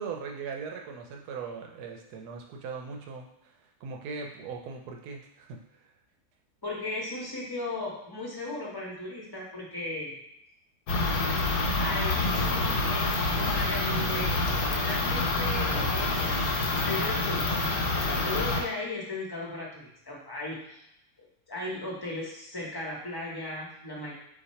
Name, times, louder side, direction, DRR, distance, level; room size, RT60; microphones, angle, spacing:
voice 1, 0.0-3.3 3.8-5.6, right 5 dB, 80° right, 2 dB, 1.3 m, -39 dB
voice 2, 6.6-10.2 11.8-14.3 14.6-20.9 21.2-24.1, left 2 dB, 20° left, -4 dB, 0.9 m, -37 dB
sound 1, 10.9-18.6, left 2 dB, 70° left, 1.3 m, -27 dB
4.1 x 2.9 x 4.2 m, 0.81 s
omnidirectional pair, 1.7 m